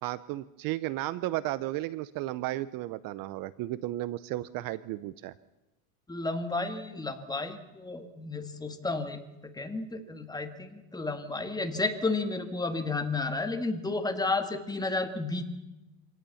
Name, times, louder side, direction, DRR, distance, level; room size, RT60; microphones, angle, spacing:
voice 1, 0.0-5.3, right 16 dB, 50° right, 17 dB, 0.8 m, -34 dB
voice 2, 6.1-15.4, left 3 dB, 10° left, 7 dB, 1.9 m, -32 dB
25.5 x 18.0 x 7.1 m, 0.98 s
supercardioid pair, 125°, 45 cm